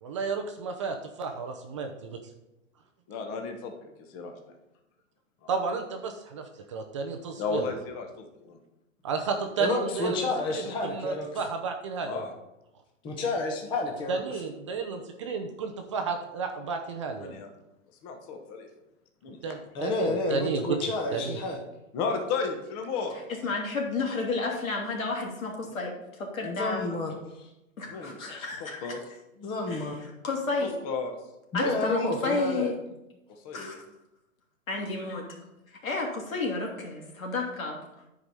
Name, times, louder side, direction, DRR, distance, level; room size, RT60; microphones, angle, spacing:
voice 1, 0.0-1.9 5.5-7.7 9.0-12.2 14.1-17.3 19.4-20.8 21.1-21.4, right 5 dB, 25° right, 5 dB, 0.5 m, -32 dB
voice 2, 3.1-3.7 4.1-4.3 5.4-5.5 7.4-8.6 12.0-12.3 17.2-17.5 18.0-18.7 19.2-19.4 21.9-23.2 27.9-28.2 28.8-29.2 30.6-31.2 33.4-33.8, left 4 dB, 30° left, 4 dB, 1.1 m, -33 dB
voice 3, 9.6-11.3 13.0-14.2 19.7-21.6 26.4-27.5 28.0-28.4 29.4-29.9 31.5-32.7, left 2 dB, 10° left, 2 dB, 0.8 m, -30 dB
voice 4, 23.4-26.9 27.8-28.9 29.7-30.7 31.5-32.7 33.5-33.8 34.7-35.2 35.8-37.8, left 3 dB, 85° left, 0 dB, 3.0 m, -31 dB
9.9 x 4.8 x 5.4 m, 0.92 s
hypercardioid pair, 150°, 40 cm